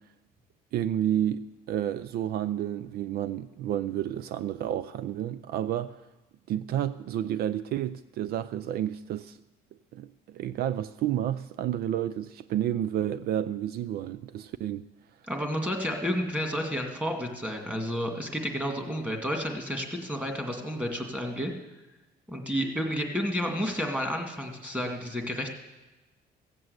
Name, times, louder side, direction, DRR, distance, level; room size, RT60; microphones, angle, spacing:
voice 1, 0.7-6.0 6.5-9.4 9.9-14.8, right 11 dB, 65° right, 0.4 m, -30 dB
voice 2, 15.3-21.5 22.3-25.5, equal, 10° right, 2.2 m, -31 dB
15.5 x 7.7 x 8.0 m
cardioid pair, 110°, 17 cm